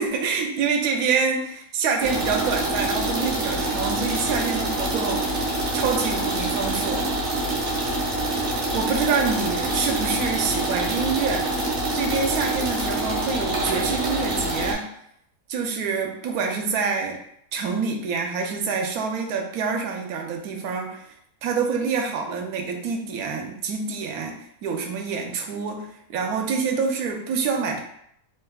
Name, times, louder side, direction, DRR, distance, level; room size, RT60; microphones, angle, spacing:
voice 1, 0.0-5.3 5.7-7.1 8.7-11.5 11.9-14.9 15.5-17.2 17.5-21.1 21.4-27.8, right 5 dB, 80° right, 3 dB, 1.1 m, -26 dB
sound 1, 2.0-14.7, right 1 dB, 50° right, 0.7 m, -26 dB
3.4 x 3.0 x 2.2 m, 0.69 s
omnidirectional pair, 1.6 m